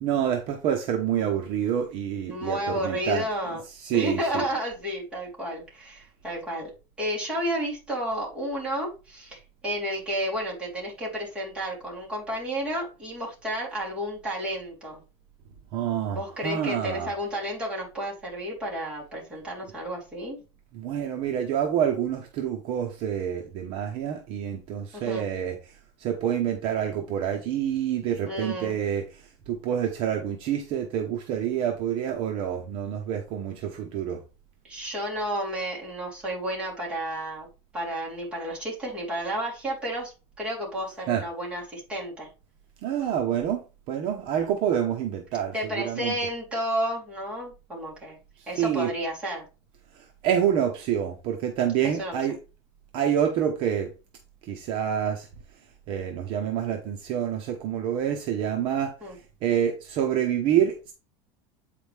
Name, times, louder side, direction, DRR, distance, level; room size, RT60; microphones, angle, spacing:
voice 1, 0.0-3.2 3.8-4.4 15.7-17.1 20.7-25.6 26.0-29.0 29.5-34.2 41.1-41.2 42.8-43.6 43.9-46.1 48.6-48.9 50.2-52.4 52.9-53.9 54.5-55.3 55.9-58.9 59.4-60.9, right 9 dB, 45° right, 0.9 m, -27 dB
voice 2, 2.2-6.7 7.0-15.0 16.1-20.4 24.9-25.3 28.3-28.8 34.6-37.5 37.7-42.3 45.5-48.2 48.5-49.5 52.0-52.2 59.0-59.2, equal, 10° right, 3.4 m, -31 dB
8.2 x 5.0 x 3.4 m
cardioid pair, 175°, 13 cm